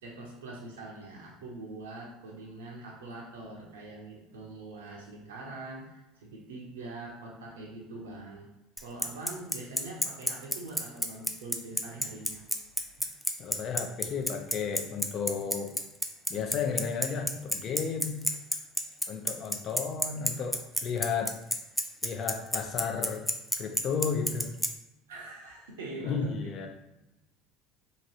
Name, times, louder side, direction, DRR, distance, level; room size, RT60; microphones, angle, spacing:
voice 1, 0.0-8.5 8.8-12.4 25.1-26.7, right 2 dB, 85° right, -2 dB, 0.7 m, -43 dB
Bicycle, 8.8-24.7, equal, ahead, 0.4 m, -28 dB
voice 2, 13.4-15.7 16.3-18.2 19.1-21.3 22.0-23.2 23.6-24.5 26.0-26.7, left 6 dB, 50° left, 4 dB, 0.6 m, -33 dB
2.9 x 2.5 x 2.9 m, 0.96 s
hypercardioid pair, 80°, 0 cm